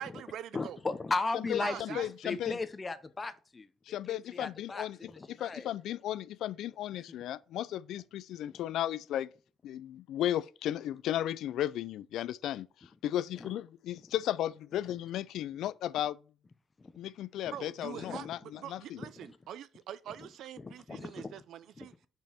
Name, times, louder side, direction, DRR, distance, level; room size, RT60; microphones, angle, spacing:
voice 1, 0.0-0.8 1.6-2.1 17.5-18.3 18.6-21.9, right 10 dB, 80° right, 0.5 m, -43 dB
voice 2, 0.5-2.0 2.2-5.7 8.5-8.6 13.4-13.5 16.8-16.9 17.9-18.3 19.0-19.4 20.2-20.3 20.6-21.4 21.8-21.9, left 3 dB, 25° left, 0.7 m, -37 dB
voice 3, 1.5-2.6 3.9-5.0 5.3-9.3 9.6-16.2 17.0-19.0, left 12 dB, 80° left, 0.3 m, -35 dB
5.2 x 4.5 x 5.8 m
cardioid pair, 90°, 0 cm